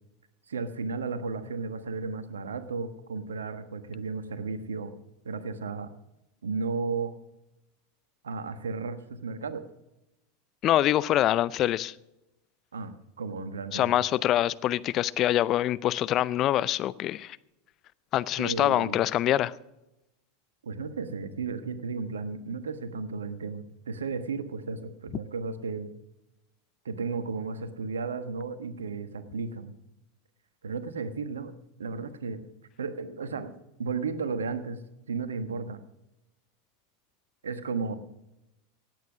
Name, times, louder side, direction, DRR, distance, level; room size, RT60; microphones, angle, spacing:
voice 1, 0.5-4.9 5.2-5.9 6.4-7.1 8.2-9.6 12.7-13.8 18.4-19.0 20.6-25.9 26.8-29.7 30.6-31.5 31.8-32.4 32.8-33.5 33.8-34.8 35.1-35.8 37.4-38.0, right 4 dB, 85° right, 1.2 m, -34 dB
voice 2, 10.6-11.9 13.7-17.4 18.1-19.5, left 13 dB, 40° left, 0.5 m, -25 dB
17.5 x 9.2 x 6.1 m
hypercardioid pair, 90°, 0 cm